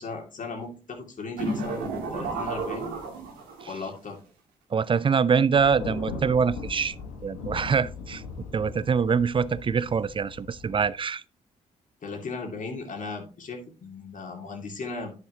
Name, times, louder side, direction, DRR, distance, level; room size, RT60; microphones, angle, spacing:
voice 1, 0.0-2.9 3.7-4.2 12.0-15.2, left 4 dB, 50° left, 2.4 m, -37 dB
sound 1, 1.4-3.8, right 3 dB, 85° right, 1.9 m, -32 dB
voice 2, 4.7-7.0 7.2-11.2, right 6 dB, 30° right, 0.5 m, -24 dB
Thunder, 5.5-10.9, left 4 dB, 90° left, 1.4 m, -39 dB
10.0 x 6.5 x 2.9 m
hypercardioid pair, 45°, 17 cm